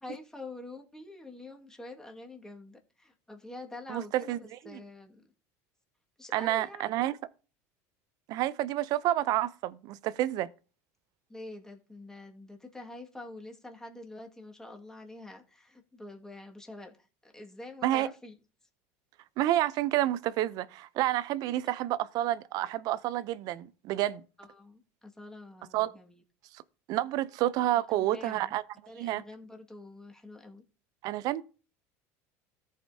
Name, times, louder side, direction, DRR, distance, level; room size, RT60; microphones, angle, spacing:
voice 1, 0.0-5.2 6.2-6.9 11.3-18.3 21.4-21.5 24.4-26.2 27.9-28.5 28.9-30.6, left 2 dB, 5° left, 1.8 m, -46 dB
voice 2, 3.9-4.4 6.3-7.1 8.3-10.5 17.8-18.1 19.4-24.2 25.7-25.9 26.9-28.6 29.0-29.2 31.0-31.4, right 14 dB, 60° right, 0.5 m, -29 dB
14.0 x 5.0 x 2.7 m
supercardioid pair, 105°, 8 cm